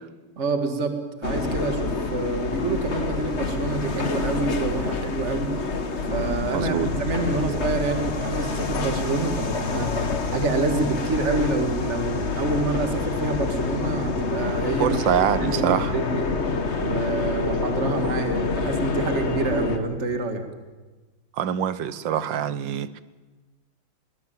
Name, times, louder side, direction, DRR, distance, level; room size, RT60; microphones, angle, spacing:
voice 1, 0.4-5.5 6.1-10.0 10.3-16.3 16.8-20.4, right 3 dB, 35° right, 6 dB, 2.3 m, -27 dB
sound 1, 1.2-19.8, left 3 dB, 35° left, 1.6 m, -27 dB
voice 2, 6.5-6.9 14.8-15.9 21.4-23.0, right 9 dB, 65° right, 15 dB, 1.5 m, -24 dB
22.0 x 20.0 x 9.2 m, 1.2 s
omnidirectional pair, 2.4 m